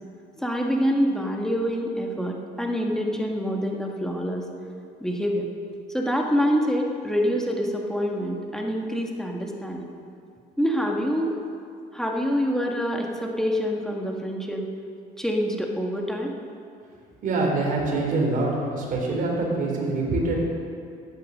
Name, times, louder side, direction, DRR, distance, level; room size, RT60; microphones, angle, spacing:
voice 1, 0.4-4.5 5.0-5.5 5.9-9.9 10.6-11.3 11.9-14.7 15.2-16.3, equal, 5° left, 0 dB, 1.6 m, -26 dB
voice 2, 17.2-20.4, right 2 dB, 55° right, -1 dB, 4.1 m, -25 dB
14.5 x 9.8 x 6.6 m, 2.4 s
cardioid pair, 110°, 17 cm